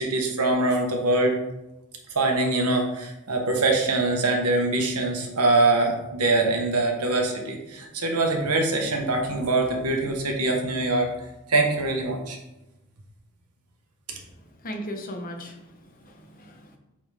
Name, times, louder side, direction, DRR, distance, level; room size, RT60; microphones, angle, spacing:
voice 1, 0.0-1.4 2.1-11.1 11.5-12.4, right 2 dB, 90° right, 2 dB, 1.3 m, -23 dB
voice 2, 14.6-16.8, equal, 40° left, 4 dB, 0.9 m, -37 dB
8.6 x 3.9 x 3.5 m, 0.97 s
head